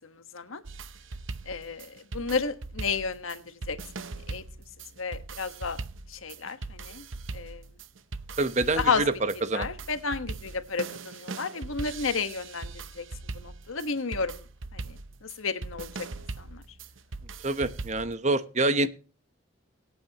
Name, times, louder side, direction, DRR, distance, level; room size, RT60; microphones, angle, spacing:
sound 1, 0.6-18.1, right 3 dB, 70° right, 0.8 m, -40 dB
voice 1, 1.5-3.8 4.3-4.4 5.0-5.8 6.1-7.0 7.3-7.6 8.8-9.0 9.5-13.1 13.3-14.4 14.7-15.0 15.2-15.9 16.4-16.6, left 5 dB, 80° left, 10 dB, 1.4 m, -32 dB
voice 2, 8.4-9.7 17.4-18.9, right 2 dB, 35° right, 12 dB, 0.9 m, -26 dB
23.5 x 8.8 x 2.9 m, 0.37 s
head